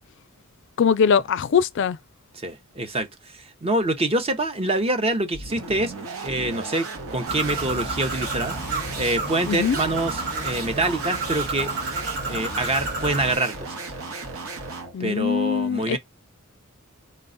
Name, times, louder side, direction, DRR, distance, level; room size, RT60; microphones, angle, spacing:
voice 1, 0.8-2.0 9.5-9.8 14.9-16.0, left 6 dB, 60° left, 0.4 m, -21 dB
voice 2, 2.4-3.1 3.4-5.9 6.2-8.6 9.0-11.7 12.3-13.7 15.0-16.0, right 2 dB, 30° right, 0.6 m, -25 dB
sound 1, 5.3-15.0, right 3 dB, 80° right, 1.0 m, -35 dB
Bird, 7.3-13.4, right 3 dB, 55° right, 1.3 m, -31 dB
4.1 x 2.2 x 3.8 m
head